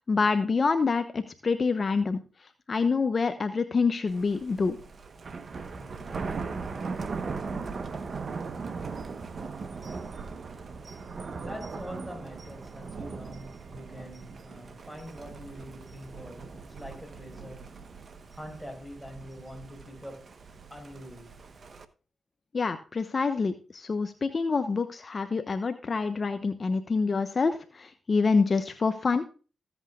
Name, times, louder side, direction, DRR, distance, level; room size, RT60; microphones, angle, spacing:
voice 1, 0.0-4.8 22.5-29.2, left 4 dB, 50° left, 1.0 m, -27 dB
Thunder, 4.1-21.8, right 4 dB, 55° right, 1.1 m, -39 dB
voice 2, 5.7-6.4 10.5-10.6 11.3-17.7 18.3-20.3 20.7-21.4, equal, ahead, 5.1 m, -44 dB
15.0 x 8.2 x 2.4 m
supercardioid pair, 45°, 0 cm